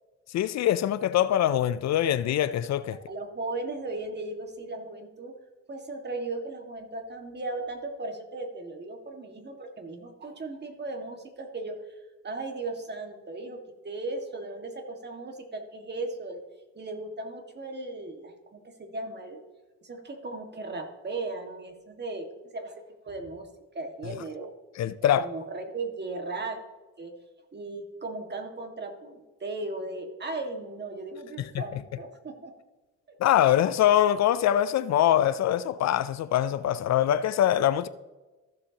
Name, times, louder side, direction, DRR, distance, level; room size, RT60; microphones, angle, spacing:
voice 1, 0.3-3.0 24.8-25.3 31.4-31.6 33.2-37.9, left 11 dB, 60° left, 0.5 m, -23 dB
voice 2, 3.1-5.3 5.7-11.8 12.2-16.4 16.8-19.4 19.8-22.3 22.5-23.5 23.7-24.5 25.2-26.6 27.0-27.1 27.5-32.5 33.1-33.2, right 2 dB, 35° right, 1.8 m, -37 dB
14.5 x 7.1 x 2.9 m
cardioid pair, 90°, 30 cm